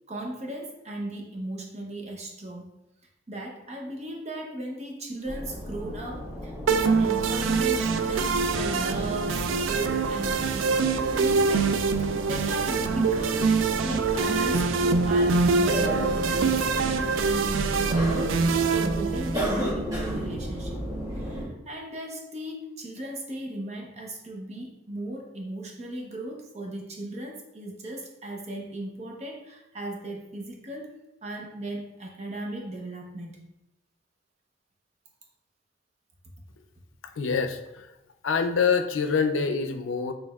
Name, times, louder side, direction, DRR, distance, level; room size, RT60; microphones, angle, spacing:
voice 1, 0.1-2.7 3.3-18.5 18.7-20.8 21.2-33.4, right 1 dB, 35° right, 0 dB, 0.8 m, -37 dB
sound 1, 5.2-21.5, equal, 20° right, 1.6 m, -34 dB
sound 2, 6.7-19.7, right 4 dB, 75° right, 0.3 m, -25 dB
voice 2, 37.2-37.9 38.2-40.1, left 5 dB, 80° left, 6 dB, 0.5 m, -25 dB
6.3 x 3.3 x 2.3 m, 0.91 s
head